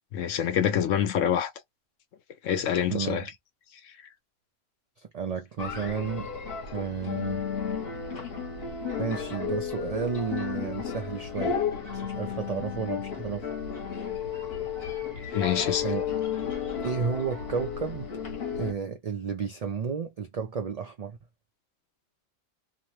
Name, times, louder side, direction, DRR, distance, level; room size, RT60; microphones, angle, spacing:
voice 1, 0.1-1.5 2.4-3.2 15.3-15.9, left 9 dB, 80° left, 1.0 m, -26 dB
voice 2, 2.9-3.3 5.0-6.3 6.7-7.5 9.0-11.6 11.9-13.5 15.8-16.2 16.8-18.1 18.5-21.2, right 6 dB, 75° right, 0.3 m, -32 dB
sound 1, 5.6-18.7, left 7 dB, 50° left, 1.1 m, -33 dB
2.8 x 2.0 x 2.9 m
omnidirectional pair, 1.3 m